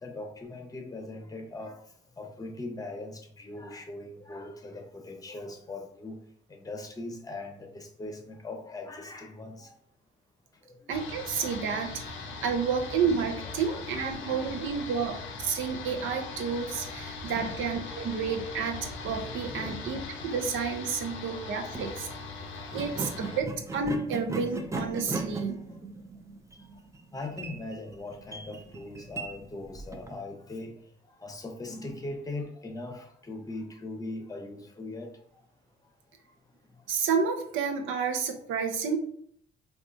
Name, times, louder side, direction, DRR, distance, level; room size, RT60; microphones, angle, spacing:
voice 1, 0.0-1.7 2.2-6.2 6.6-9.7 13.7-13.8 14.2-14.5 17.4-17.7 19.5-19.8 22.6-22.7 27.1-30.7 31.2-35.1, left 2 dB, 20° left, 3 dB, 0.7 m, -40 dB
sound 1, 10.9-23.4, left 4 dB, 80° left, 0.5 m, -40 dB
voice 2, 10.9-22.1 22.7-25.6 36.9-39.0, right 6 dB, 80° right, 5 dB, 0.6 m, -30 dB
sound 2, 21.6-21.9 22.7-30.2, right 2 dB, 15° right, 0.4 m, -38 dB
3.6 x 2.4 x 2.5 m, 0.66 s
cardioid pair, 90°, 20 cm